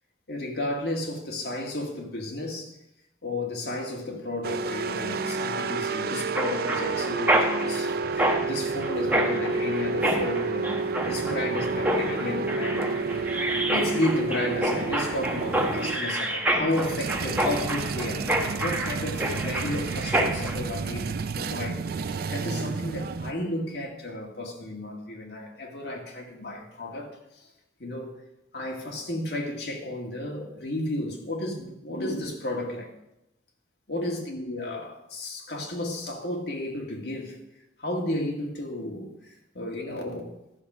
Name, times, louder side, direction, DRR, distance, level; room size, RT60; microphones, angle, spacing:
voice 1, 0.3-2.7 3.2-12.9 13.7-18.3 18.6-27.4 27.8-28.1 28.5-32.9 33.9-37.4 37.8-39.2 39.5-40.4, left 1 dB, 60° left, 1.9 m, -33 dB
sound 1, 4.4-16.0 16.7-23.3, right 4 dB, 55° right, 0.4 m, -30 dB
Mechanisms, 6.4-20.6, right 1 dB, 10° right, 0.9 m, -28 dB
12.5 x 6.2 x 5.6 m
head